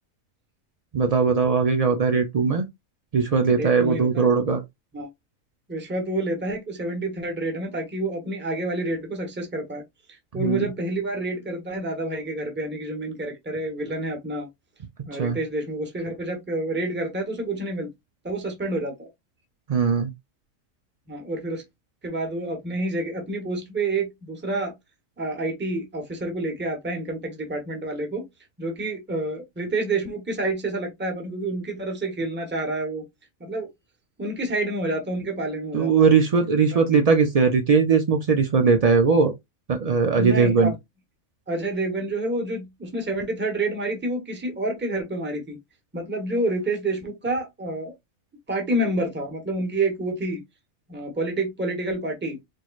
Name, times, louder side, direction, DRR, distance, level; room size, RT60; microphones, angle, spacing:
voice 1, 0.9-2.7 3.1-4.6 10.3-10.7 15.1-15.4 19.7-20.1 35.7-39.3 39.7-40.7, right 5 dB, 80° right, 0.3 m, -20 dB
voice 2, 3.5-4.3 4.9-5.1 5.7-9.8 10.1-14.5 15.0-17.9 18.2-19.1 21.1-21.6 22.0-24.7 25.2-28.3 28.6-33.0 33.4-33.7 34.2-36.1 36.7-36.8 40.1-40.7 41.5-45.6 45.9-47.9 48.5-50.4 50.9-52.4, right 2 dB, 10° right, 0.9 m, -28 dB
4.5 x 3.1 x 2.3 m
omnidirectional pair, 1.4 m